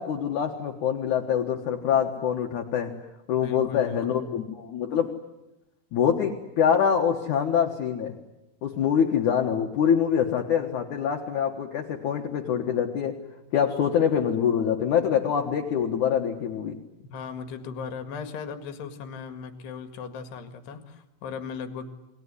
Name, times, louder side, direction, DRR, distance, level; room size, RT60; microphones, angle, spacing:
voice 1, 0.0-3.0 3.3-5.1 5.9-8.1 8.6-13.2 13.5-16.8, left 8 dB, 60° left, 2 dB, 2.5 m, -25 dB
voice 2, 3.4-4.2 17.1-22.0, left 5 dB, 90° left, 7 dB, 4.0 m, -37 dB
29.0 x 20.5 x 9.8 m, 0.94 s
omnidirectional pair, 4.7 m